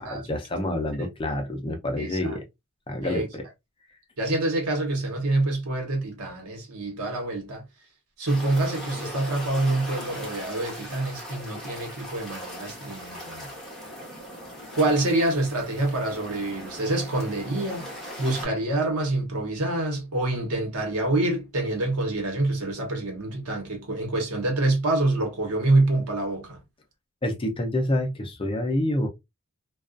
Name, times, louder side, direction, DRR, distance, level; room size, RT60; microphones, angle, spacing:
voice 1, 0.0-2.4 2.9-3.5 27.2-29.1, left 1 dB, 25° left, 0.5 m, -27 dB
voice 2, 2.0-2.4 3.0-3.3 4.2-7.6 8.2-13.5 14.8-17.9 18.2-26.6, right 2 dB, 90° right, 1.0 m, -26 dB
sound 1, 8.3-18.5, equal, ahead, 0.9 m, -39 dB
2.3 x 2.3 x 2.4 m
head